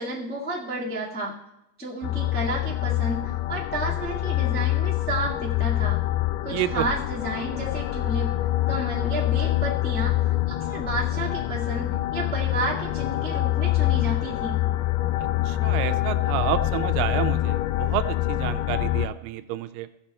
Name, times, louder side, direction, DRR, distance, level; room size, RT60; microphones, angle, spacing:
voice 1, 0.0-1.3 1.8-6.0 6.4-8.3 8.7-14.6, right 2 dB, 10° left, -5 dB, 0.5 m, -31 dB
sound 1, 2.0-19.1, left 15 dB, 80° left, 2.0 m, -25 dB
voice 2, 6.5-6.9 15.2-19.9, right 13 dB, 80° right, 11 dB, 2.2 m, -29 dB
16.5 x 6.0 x 4.3 m, 0.87 s
omnidirectional pair, 4.1 m